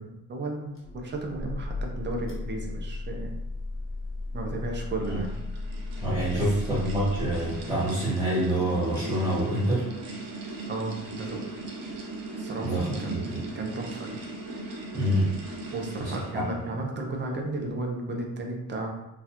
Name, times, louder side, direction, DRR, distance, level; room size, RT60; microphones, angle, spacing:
voice 1, 0.0-3.3 4.3-5.4 6.3-6.8 10.6-11.4 12.4-14.1 15.7-18.9, right 2 dB, 30° right, 1 dB, 0.6 m, -34 dB
sound 1, 0.7-8.1, left 2 dB, 40° left, 1.0 m, -35 dB
sound 2, 4.5-16.6, right 2 dB, 75° right, 0.8 m, -39 dB
voice 2, 6.0-9.8 12.6-13.4 14.9-15.3 16.0-16.4, right 1 dB, 10° right, -10 dB, 1.0 m, -27 dB
3.9 x 2.4 x 2.8 m, 0.93 s
cardioid pair, 145°, 34 cm